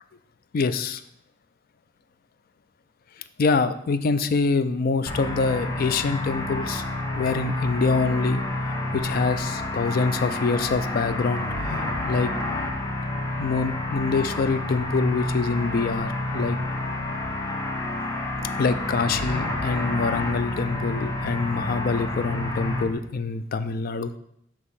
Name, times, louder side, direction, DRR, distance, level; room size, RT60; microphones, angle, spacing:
voice 1, 0.5-1.0 3.4-6.8 7.2-8.4 8.9-11.4 12.1-12.3 13.4-16.6 18.6-24.1, left 4 dB, 50° left, 11 dB, 0.4 m, -25 dB
sound 1, 5.1-22.8, left 2 dB, 20° left, 0.8 m, -29 dB
6.2 x 3.0 x 5.5 m, 0.74 s
head